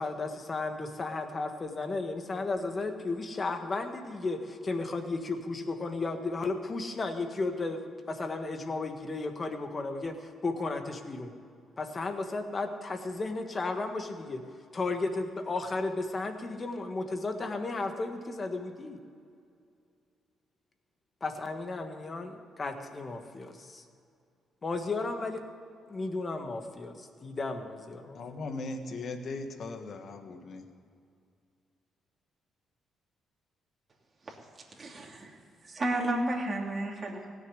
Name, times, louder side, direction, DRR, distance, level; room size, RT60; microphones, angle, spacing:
voice 1, 0.0-11.3 11.8-14.4 14.7-19.0 21.2-23.8 24.6-25.4 25.9-28.2, left 3 dB, 35° left, 6 dB, 1.6 m, -34 dB
voice 2, 28.1-30.7, left 3 dB, 55° left, 6 dB, 1.4 m, -38 dB
voice 3, 34.7-37.3, right 1 dB, 35° right, -1 dB, 2.8 m, -33 dB
16.5 x 6.8 x 9.8 m, 2.4 s
cardioid pair, 90°, 0 cm